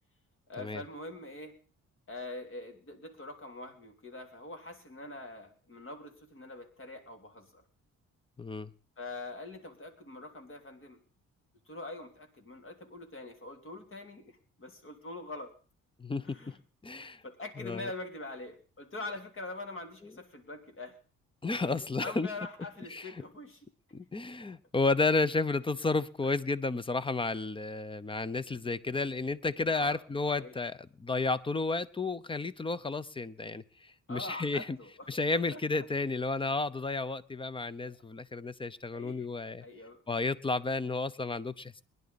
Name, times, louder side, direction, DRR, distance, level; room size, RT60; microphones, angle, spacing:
voice 1, 0.5-1.5 2.1-7.6 9.0-11.0 11.7-15.5 16.2-16.6 17.2-21.0 21.6-21.7 22.0-23.7 26.2-26.4 29.7-30.0 30.4-30.5 34.1-35.8 37.8-38.0 38.9-39.3 39.6-40.0, left 2 dB, 45° left, 5 dB, 3.3 m, -44 dB
voice 2, 8.4-8.7 16.0-16.5 16.8-17.2 17.6-17.9 21.4-22.3 22.9-23.0 23.9-34.8 35.1-39.6 40.1-41.8, left 3 dB, 15° left, 17 dB, 0.8 m, -32 dB
22.0 x 11.0 x 4.2 m, 0.39 s
cardioid pair, 90°, 30 cm